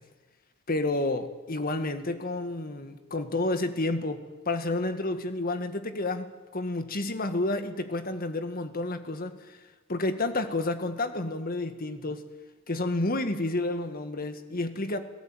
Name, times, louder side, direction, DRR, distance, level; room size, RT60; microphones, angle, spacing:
voice 1, 0.7-9.6 9.9-12.2 12.7-15.0, left 2 dB, 45° left, 9 dB, 1.8 m, -30 dB
28.5 x 17.5 x 9.1 m, 1.3 s
head